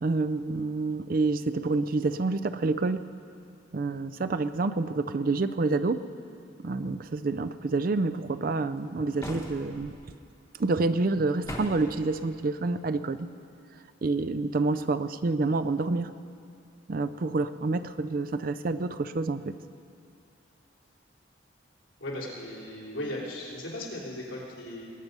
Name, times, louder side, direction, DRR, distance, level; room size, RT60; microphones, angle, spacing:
voice 1, 0.0-3.0 3.7-6.0 6.6-9.9 10.6-13.3 14.0-16.1 16.9-19.5, right 3 dB, 45° right, 11 dB, 0.4 m, -28 dB
sound 1, 9.2-9.9 11.4-12.0, left 1 dB, 15° left, 1.3 m, -38 dB
voice 2, 22.0-24.9, left 1 dB, 75° left, -4 dB, 3.4 m, -37 dB
21.0 x 9.3 x 5.5 m, 2.5 s
head